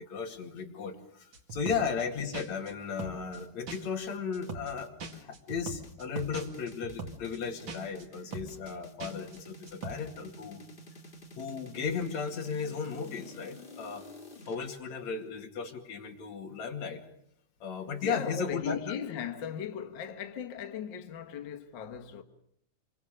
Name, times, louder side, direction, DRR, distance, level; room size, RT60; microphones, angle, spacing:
voice 1, 0.0-10.6 11.4-14.0 14.5-17.0 17.6-19.0, left 6 dB, 50° left, 3.2 m, -35 dB
sound 1, 1.3-2.0 2.3-2.7 3.0-3.4 3.7-4.0 4.3-4.7 5.0-7.4 7.7-8.0 8.3-8.7 9.0-9.4 9.7-9.9, right 4 dB, 40° right, 2.3 m, -41 dB
sound 2, 3.4-14.7, left 1 dB, 20° left, 1.5 m, -50 dB
voice 2, 18.0-22.2, left 8 dB, 65° left, 1.1 m, -38 dB
26.5 x 24.0 x 6.6 m
omnidirectional pair, 4.5 m